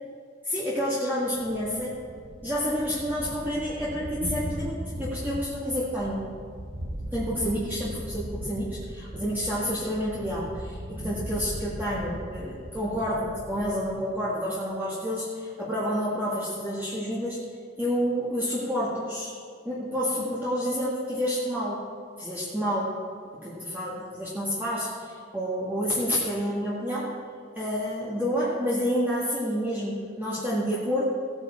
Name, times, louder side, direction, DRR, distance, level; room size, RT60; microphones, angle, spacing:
voice 1, 0.4-1.9 2.4-6.3 7.1-17.4 17.8-19.3 19.6-21.8 22.2-23.0 23.3-27.1 27.6-31.0, equal, 10° right, -8 dB, 1.8 m, -29 dB
Thunder, 1.3-14.0, equal, 80° right, 1.3 m, -38 dB
16.5 x 9.0 x 4.3 m, 2.1 s
head